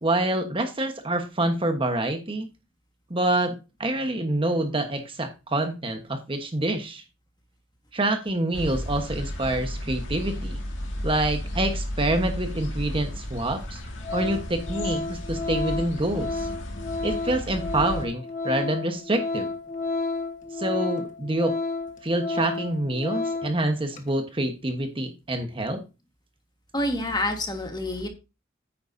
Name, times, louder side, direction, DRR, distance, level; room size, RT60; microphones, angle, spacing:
voice 1, 0.0-2.5 3.1-3.5 3.8-7.0 7.9-10.6 11.0-13.8 14.1-16.5 17.0-19.5 20.6-21.5 22.0-25.8, right 1 dB, 30° right, 6 dB, 1.2 m, -26 dB
sound 1, 8.5-18.1, equal, 80° left, 2.1 m, -33 dB
Organ, 13.0-13.1 13.6-13.8 14.0-23.6 23.9-24.1, left 3 dB, 40° left, 1.3 m, -31 dB
voice 2, 26.7-28.1, left 1 dB, 20° left, 4 dB, 1.6 m, -27 dB
9.4 x 9.1 x 2.7 m, 0.28 s
head